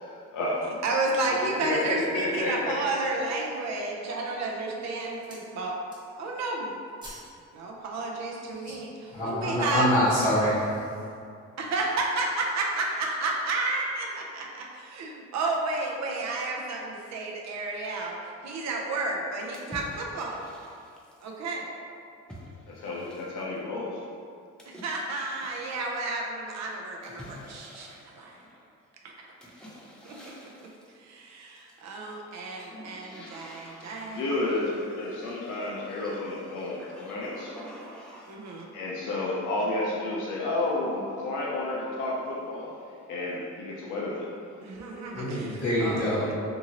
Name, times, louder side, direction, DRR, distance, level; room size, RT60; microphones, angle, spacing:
voice 1, 0.0-0.7 1.3-2.8 22.7-24.0 34.1-37.6 38.7-42.7 43.1-44.3, left 2 dB, 90° left, -5 dB, 0.5 m, -31 dB
voice 2, 0.8-5.8 6.2-6.8 7.5-8.9 9.2-9.9 11.6-18.2 18.4-20.4 21.2-21.7 24.7-28.4 29.2-29.3 30.0-30.3 31.0-34.3 38.3-38.7 44.6-46.0, right 2 dB, 60° right, 0 dB, 0.5 m, -31 dB
sound 1, 1.3-1.6 2.2-2.3 2.8-3.3 4.0-4.4 4.7-5.5 5.8-6.3 6.6-7.4 7.7-7.8, right 1 dB, 15° right, 0.8 m, -50 dB
voice 3, 9.1-10.9 45.1-46.3, equal, 25° left, -10 dB, 0.8 m, -25 dB
sound 2, 19.5-21.3 22.3-23.6 24.6-26.0 27.0-28.7 29.4-30.9 31.6-32.2 32.5-38.5, equal, 5° left, 0.4 m, -48 dB
2.7 x 2.6 x 2.8 m, 2.4 s
cardioid pair, 90°, 30 cm